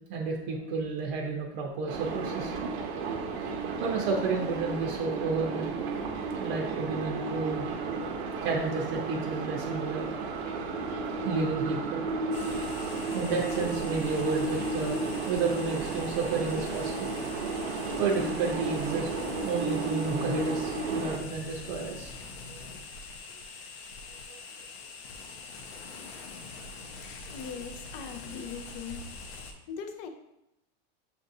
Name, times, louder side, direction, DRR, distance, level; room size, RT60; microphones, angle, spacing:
voice 1, 0.1-2.7 3.8-5.8 6.4-7.7 8.4-10.1 11.2-12.1 13.1-17.1 18.0-22.1 22.5-22.6 24.3-24.4, right 4 dB, 50° right, 0 dB, 0.7 m, -31 dB
sound 1, 1.9-21.2, right 3 dB, 85° right, 0.8 m, -33 dB
sound 2, 12.3-29.5, left 3 dB, 80° left, 0.8 m, -43 dB
voice 2, 27.3-29.0 29.7-30.1, left 6 dB, 35° left, 5 dB, 0.4 m, -40 dB
6.4 x 2.6 x 2.7 m, 0.86 s
supercardioid pair, 140°, 31 cm